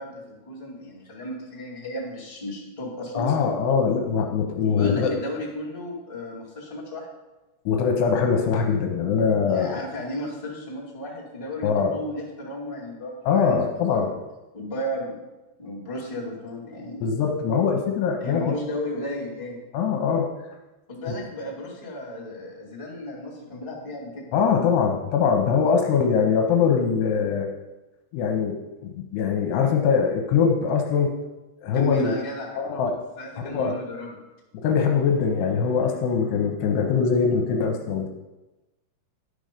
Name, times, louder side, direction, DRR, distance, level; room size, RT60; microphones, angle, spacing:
voice 1, 0.0-3.3 4.6-7.1 9.4-14.2 14.5-15.2 15.6-17.1 18.2-19.6 20.9-24.3 31.7-34.2, left 1 dB, 20° left, -7 dB, 0.9 m, -34 dB
voice 2, 3.1-5.1 7.7-9.7 11.6-11.9 13.2-14.2 17.0-18.4 19.7-20.3 24.3-27.5 28.1-31.1 31.6-32.1 32.6-32.9 33.4-33.8 34.6-38.1, left 6 dB, 75° left, 3 dB, 2.7 m, -22 dB
12.5 x 5.3 x 5.2 m, 1.1 s
omnidirectional pair, 5.1 m